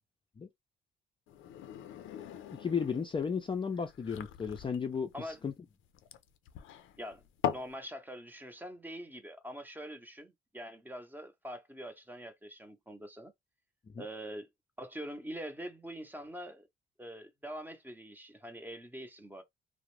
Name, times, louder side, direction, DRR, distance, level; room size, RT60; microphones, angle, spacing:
sound 1, 1.3-7.7, left 10 dB, 80° left, 0.4 m, -41 dB
voice 1, 2.6-5.5 13.9-14.0, left 6 dB, 25° left, 0.4 m, -34 dB
voice 2, 7.0-13.3 14.0-14.5 14.8-16.7 17.0-19.4, equal, 10° right, 0.7 m, -44 dB
2.4 x 2.1 x 3.0 m
cardioid pair, 90°, 20 cm